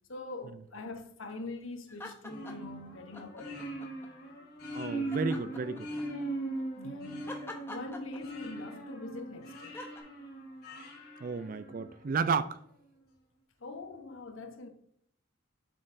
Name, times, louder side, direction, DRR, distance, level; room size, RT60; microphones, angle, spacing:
voice 1, 0.1-3.6 6.8-7.3 7.7-9.8 13.6-14.7, left 3 dB, 75° left, 0.9 m, -43 dB
sound 1, 1.9-2.7 3.1-4.1 5.1-6.3 7.3-8.6 9.7-10.0, left 2 dB, 10° left, 0.7 m, -45 dB
sound 2, 2.3-12.1, right 2 dB, 45° left, 1.6 m, -40 dB
voice 2, 4.7-5.9 6.8-6.9 11.2-12.6, right 5 dB, 40° right, 0.3 m, -32 dB
7.7 x 6.1 x 2.6 m
head